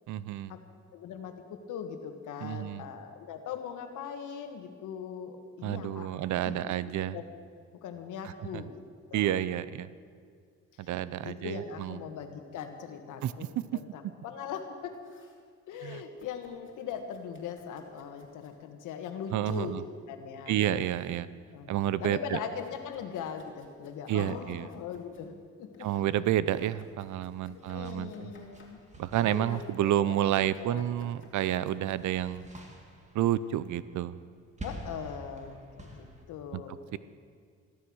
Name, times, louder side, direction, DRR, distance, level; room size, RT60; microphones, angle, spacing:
voice 1, 0.1-0.5 2.4-2.8 5.6-7.2 8.4-8.6 9.1-9.9 10.8-12.0 13.2-13.3 15.8-16.0 19.3-19.8 20.5-21.3 21.7-22.4 24.1-24.7 25.8-28.3 29.0-32.5 33.1-34.2 36.5-36.6 36.9-37.0, right 11 dB, 75° right, 16 dB, 0.7 m, -30 dB
voice 2, 0.9-6.1 6.4-6.6 7.1-7.4 7.8-8.7 9.1-9.4 10.7-10.9 11.2-13.5 13.7-15.0 15.7-20.6 21.5-21.7 22.0-25.9 27.5-28.8 29.1-29.9 30.6-30.8 34.6-36.7, left 7 dB, 85° left, 6 dB, 1.6 m, -40 dB
Domestic sounds home sounds, 14.7-15.4 16.2-18.6 19.3-19.8 20.6-21.2 21.6-25.3 25.7-29.0 29.3-29.8 30.5-32.6, left 3 dB, 40° left, 3.1 m, -61 dB
sound 1, 27.6-31.1 31.4-36.2, right 1 dB, 25° right, 2.5 m, -49 dB
14.5 x 13.0 x 6.3 m, 2.1 s
cardioid pair, 90°, 30 cm